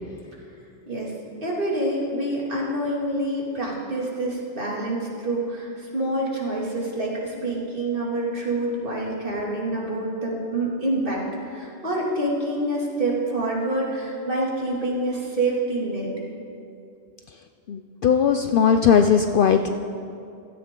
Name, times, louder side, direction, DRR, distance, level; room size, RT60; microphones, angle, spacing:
voice 1, 1.4-16.1, right 1 dB, 50° right, -4 dB, 2.8 m, -27 dB
voice 2, 17.7-19.7, left 7 dB, 60° left, 7 dB, 0.6 m, -18 dB
16.0 x 13.5 x 3.8 m, 2.6 s
omnidirectional pair, 1.2 m